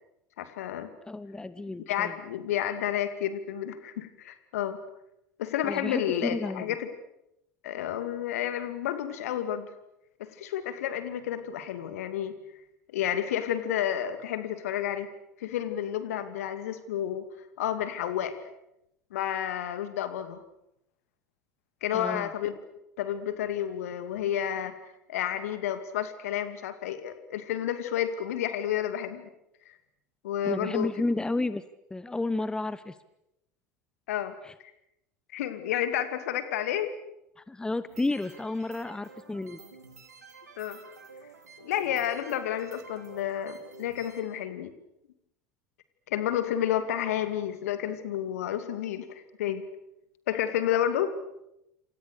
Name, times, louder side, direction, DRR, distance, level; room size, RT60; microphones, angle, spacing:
voice 1, 0.4-0.9 1.9-4.8 5.4-6.9 7.6-9.7 10.2-12.4 12.9-15.1 15.4-17.3 17.6-18.3 19.1-20.4 21.8-22.6 23.0-24.7 25.1-29.3 29.7-29.8 30.2-30.9 34.1-34.4 35.3-36.9 40.6-40.8 41.6-44.7 46.1-49.7 50.3-51.1, left 10 dB, 65° left, 10 dB, 2.5 m, -30 dB
voice 2, 1.0-2.1 5.6-6.7 21.9-22.3 30.4-31.6 31.9-32.9 34.4-34.5 37.4-39.6, left 2 dB, 10° left, 15 dB, 1.1 m, -31 dB
sound 1, 37.9-44.2, right 4 dB, 80° right, 3.6 m, -51 dB
28.0 x 27.5 x 6.7 m, 0.86 s
figure-of-eight pair, 75°, 9 cm